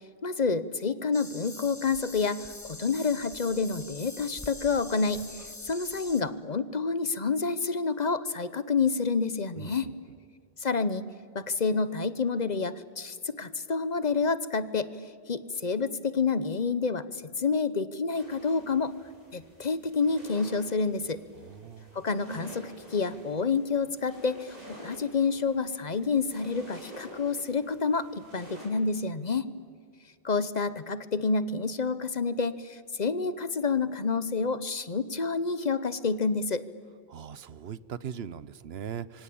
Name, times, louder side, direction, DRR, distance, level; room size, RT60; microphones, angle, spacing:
voice 1, 0.2-9.9 10.6-11.0 11.3-14.9 15.3-18.9 19.3-21.2 21.9-29.4 30.2-36.6, left 4 dB, 45° left, 15 dB, 1.0 m, -28 dB
sound 1, 1.1-6.2, left 2 dB, 15° left, 1.1 m, -44 dB
voice 2, 9.6-9.9 21.4-22.0 37.1-39.2, right 8 dB, 75° right, 18 dB, 1.1 m, -40 dB
sound 2, 18.1-28.7, right 1 dB, 40° right, 5.6 m, -48 dB
26.5 x 24.5 x 8.7 m, 2.3 s
omnidirectional pair, 1.1 m